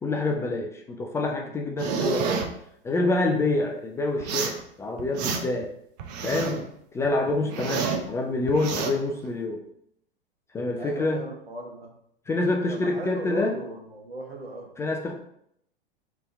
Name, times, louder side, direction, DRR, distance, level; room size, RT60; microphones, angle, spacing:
voice 1, 0.0-2.5 2.8-5.7 6.2-6.6 6.9-9.6 10.5-11.2 12.3-13.6 14.8-15.1, left 2 dB, 10° left, 1 dB, 0.3 m, -27 dB
sound 1, 1.8-2.5 4.2-4.6 5.0-5.6 6.0-6.6 7.0-8.1 8.5-8.9, right 6 dB, 45° right, 0.7 m, -29 dB
voice 2, 10.8-11.9 12.7-14.7, right 1 dB, 85° right, 0 dB, 1.1 m, -37 dB
4.1 x 3.5 x 3.2 m, 0.71 s
figure-of-eight pair, 95°, 30 cm